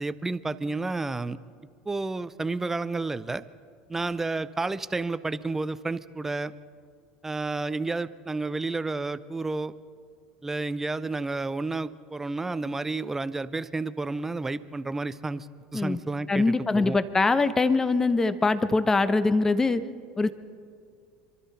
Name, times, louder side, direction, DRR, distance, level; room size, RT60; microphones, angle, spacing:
voice 1, 0.0-1.4 1.9-3.4 3.9-6.5 7.2-9.7 10.4-15.5 15.7-17.0, right 3 dB, 15° right, 15 dB, 0.6 m, -31 dB
voice 2, 16.3-19.8 20.2-20.3, left 3 dB, 20° left, 13 dB, 0.9 m, -23 dB
26.5 x 12.5 x 4.2 m, 2.1 s
hypercardioid pair, 70°, 3 cm